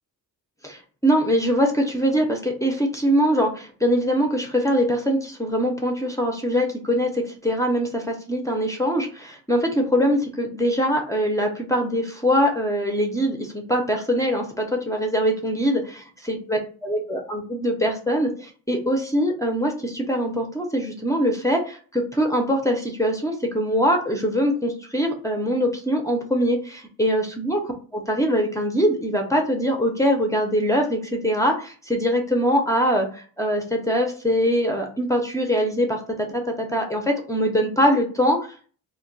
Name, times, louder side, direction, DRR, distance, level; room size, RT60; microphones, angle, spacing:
voice 1, 0.6-38.7, equal, 10° left, 2 dB, 0.5 m, -23 dB
2.2 x 2.1 x 3.8 m, 0.40 s
cardioid pair, 95°, 36 cm